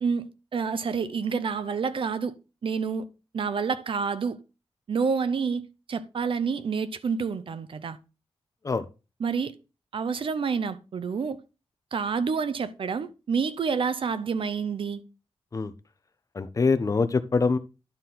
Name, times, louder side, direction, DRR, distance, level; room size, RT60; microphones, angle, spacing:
voice 1, 0.0-2.3 2.6-3.1 3.3-4.4 4.9-5.6 5.9-8.0 9.2-9.5 9.9-11.4 11.9-15.0, right 5 dB, 60° right, 0.6 m, -28 dB
voice 2, 16.3-17.6, left 4 dB, 35° left, 0.6 m, -24 dB
11.0 x 3.9 x 4.2 m
wide cardioid pair, 165°, 10 cm